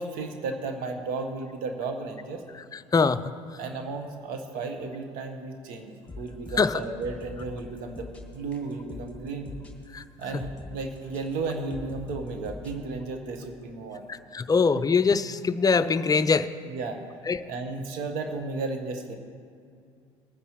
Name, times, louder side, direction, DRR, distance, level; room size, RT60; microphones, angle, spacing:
voice 1, 0.0-2.4 3.6-9.6 10.2-14.1 16.7-17.0 17.5-19.2, right 3 dB, 65° right, 5 dB, 1.3 m, -34 dB
voice 2, 2.5-3.3 6.6-6.8 9.9-10.0 10.3-10.4 14.1-16.5 17.3-17.4, left 5 dB, 25° left, 13 dB, 0.5 m, -23 dB
sound 1, 6.1-12.8, left 2 dB, 10° left, 2.1 m, -43 dB
20.0 x 9.8 x 3.1 m, 2.3 s
hypercardioid pair, 60°, 16 cm